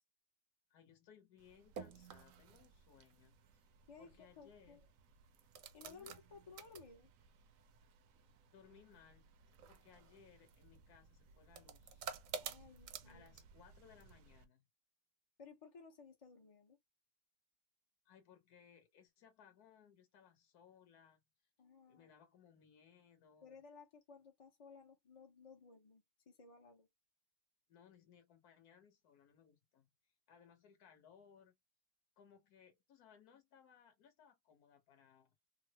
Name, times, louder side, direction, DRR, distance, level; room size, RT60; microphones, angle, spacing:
voice 1, 0.7-3.7 4.0-4.8 5.8-6.2 8.5-9.3 9.7-12.1 13.0-14.6 18.0-21.2 21.9-23.6 27.7-31.6 32.2-35.4, left 7 dB, 70° left, 1.5 m, -65 dB
sound 1, 1.4-14.5, right 7 dB, 65° right, 0.9 m, -53 dB
voice 2, 3.9-4.8 5.7-7.1 12.4-13.3 15.4-16.8 21.6-22.1 23.4-26.9, left 5 dB, 45° left, 0.4 m, -58 dB
3.6 x 2.0 x 2.8 m
omnidirectional pair, 1.7 m